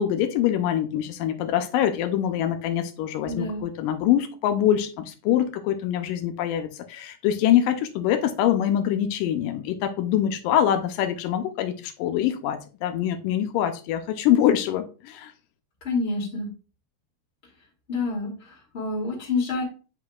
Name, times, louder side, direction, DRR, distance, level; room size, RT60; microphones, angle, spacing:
voice 1, 0.0-15.3, left 10 dB, 85° left, 7 dB, 2.3 m, -24 dB
voice 2, 3.2-3.6 15.8-16.5 17.9-19.6, left 3 dB, 25° left, -2 dB, 1.9 m, -28 dB
8.5 x 5.2 x 2.3 m, 0.35 s
omnidirectional pair, 3.8 m